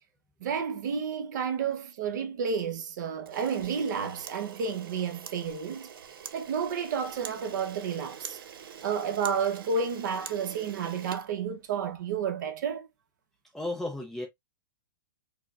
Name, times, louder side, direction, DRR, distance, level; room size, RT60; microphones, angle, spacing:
voice 1, 0.4-5.9 6.3-8.4 8.8-12.9, right 6 dB, 55° right, 0.8 m, -31 dB
Camera, 3.2-12.0, right 8 dB, 80° right, 0.6 m, -45 dB
voice 2, 13.5-14.3, left 2 dB, 5° left, 0.4 m, -33 dB
4.7 x 2.1 x 2.4 m
hypercardioid pair, 155°, 12 cm